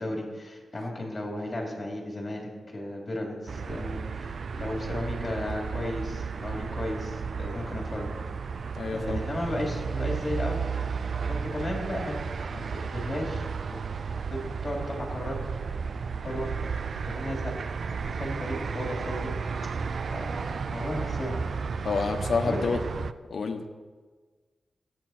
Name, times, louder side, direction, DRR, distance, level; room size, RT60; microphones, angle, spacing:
voice 1, 0.0-8.1 8.9-10.6 11.3-12.1 12.5-13.8 14.3-15.4 16.2-16.5 17.1-17.5 18.1-19.3 20.1-21.3 22.4-22.7, left 1 dB, 30° left, -1 dB, 3.1 m, -34 dB
sound 1, 3.5-23.1, right 5 dB, 65° right, 0.4 m, -33 dB
voice 2, 8.8-9.2 21.8-22.8 23.3-23.8, left 4 dB, 70° left, 5 dB, 1.2 m, -28 dB
16.5 x 9.1 x 4.4 m, 1.4 s
wide cardioid pair, 90°, 0 cm